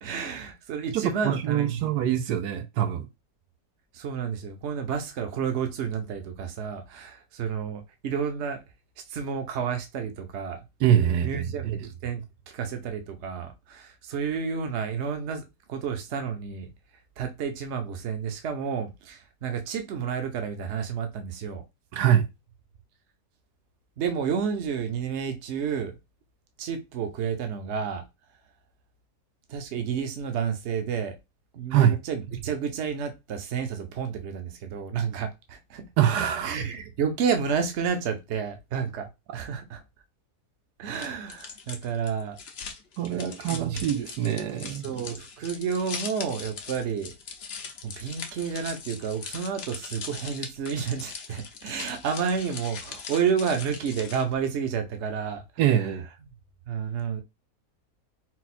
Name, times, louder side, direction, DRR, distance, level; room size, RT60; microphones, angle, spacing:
voice 1, 0.0-1.9 3.9-8.6 9.1-10.6 11.2-16.7 17.2-21.6 24.0-26.0 26.6-28.0 29.5-31.2 31.5-35.9 36.4-39.8 40.8-42.4 43.1-43.9 44.8-47.1 47.8-55.4 56.7-57.2, right 6 dB, 55° right, 0.9 m, -30 dB
voice 2, 0.9-3.1 10.8-11.9 21.9-22.3 31.7-32.0 36.0-36.6 43.0-44.8 55.6-56.1, right 10 dB, 85° right, 1.2 m, -24 dB
sound 1, 40.9-54.4, left 5 dB, 55° left, 0.7 m, -40 dB
4.2 x 2.3 x 4.1 m
omnidirectional pair, 1.7 m